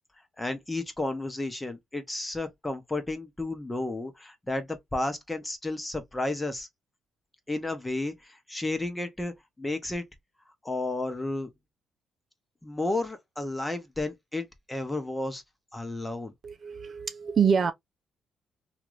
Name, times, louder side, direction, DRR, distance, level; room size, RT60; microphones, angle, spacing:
voice 1, 0.4-6.7 7.5-10.0 10.6-11.5 12.6-15.4 15.7-16.3, left 2 dB, 15° left, 0.9 m, -32 dB
voice 2, 16.4-17.7, right 6 dB, 45° right, 0.4 m, -25 dB
2.9 x 2.5 x 3.1 m
cardioid pair, 90°, 0 cm